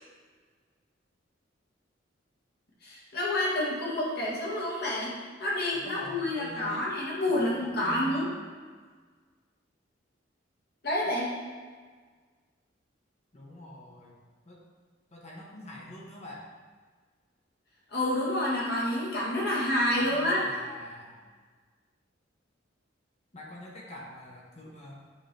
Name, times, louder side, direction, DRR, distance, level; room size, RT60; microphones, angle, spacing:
voice 1, 2.8-8.3 10.8-11.3 17.9-20.4, left 1 dB, 55° left, -5 dB, 1.8 m, -28 dB
voice 2, 5.7-6.9 7.3-8.4 13.3-14.2 14.5-14.6 15.1-16.5 20.0-21.3 23.3-25.0, left 1 dB, 35° left, -3 dB, 1.0 m, -45 dB
8.9 x 3.7 x 3.3 m, 1.5 s
head